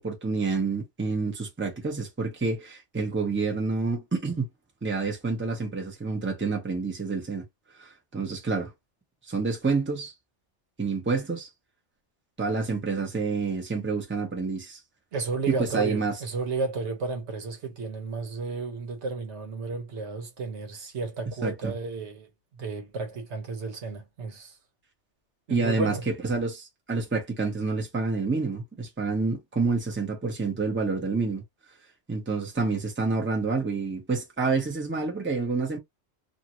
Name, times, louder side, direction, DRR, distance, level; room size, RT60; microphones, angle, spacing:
voice 1, 0.0-4.5 4.8-7.4 7.8-8.7 9.3-10.1 10.8-11.5 12.4-14.8 15.5-16.2 21.4-21.7 25.5-31.4 32.1-35.8, right 4 dB, 10° right, 0.8 m, -28 dB
voice 2, 15.1-24.6 25.5-26.0, right 4 dB, 70° right, 1.2 m, -33 dB
2.7 x 2.5 x 2.9 m
omnidirectional pair, 1.2 m